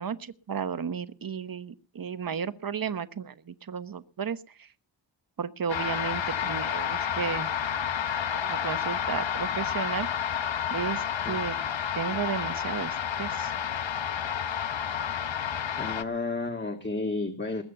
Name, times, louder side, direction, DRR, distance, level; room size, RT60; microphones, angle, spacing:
voice 1, 0.0-4.7 5.4-7.5 8.3-10.1 10.7-11.6 11.9-13.5, right 7 dB, 50° right, 12 dB, 1.1 m, -33 dB
sound 1, 5.7-16.0, left 8 dB, 75° left, 1.0 m, -30 dB
voice 2, 11.2-11.7 15.7-17.6, left 3 dB, 25° left, 4 dB, 1.8 m, -32 dB
20.5 x 8.6 x 5.7 m, 0.39 s
wide cardioid pair, 100°, 45 cm